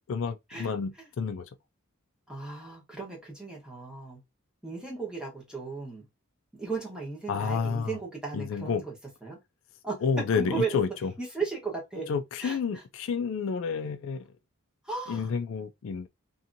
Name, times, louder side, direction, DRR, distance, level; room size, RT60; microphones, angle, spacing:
voice 1, 0.1-1.5 7.3-8.0 8.3-8.8 10.0-11.1 12.1-14.2 15.1-16.1, left 5 dB, 65° left, 0.3 m, -30 dB
voice 2, 2.3-4.2 4.6-6.1 6.5-8.9 9.2-9.4 9.8-10.0 10.3-10.8 11.2-12.1 12.4-12.6 14.8-15.3, right 4 dB, 5° right, 1.0 m, -35 dB
2.8 x 2.6 x 2.5 m
head